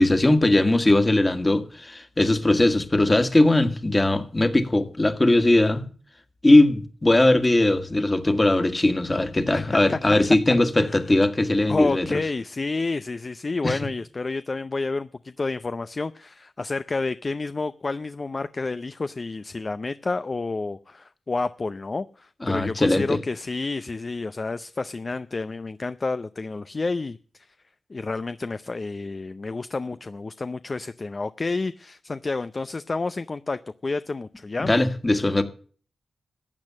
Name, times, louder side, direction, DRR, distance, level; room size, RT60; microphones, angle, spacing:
voice 1, 0.0-5.9 6.4-12.2 13.6-13.8 22.4-23.2 34.6-35.4, left 2 dB, 25° left, 1.9 m, -20 dB
voice 2, 9.5-10.0 10.8-11.0 11.7-27.5 27.9-34.7, left 3 dB, 40° left, 0.6 m, -30 dB
14.5 x 8.7 x 7.5 m
cardioid pair, 70°, 0 cm